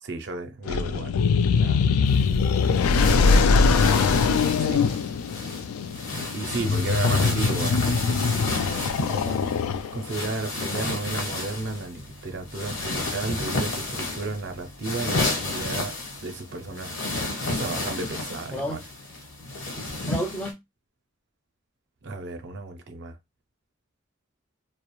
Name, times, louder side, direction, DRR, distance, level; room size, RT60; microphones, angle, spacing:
voice 1, 0.0-1.1 1.6-1.8 4.6-4.8 6.3-7.9 9.9-15.9 16.2-17.0 17.5-18.8 22.0-23.2, right 3 dB, 55° right, 0.5 m, -33 dB
sound 1, 0.7-10.2, left 5 dB, 90° left, 0.3 m, -22 dB
sound 2, 2.1-20.5, left 2 dB, 70° left, 1.0 m, -31 dB
voice 2, 9.1-9.9 18.5-18.9 19.6-20.6, equal, 5° left, 0.4 m, -35 dB
2.3 x 2.0 x 2.9 m
head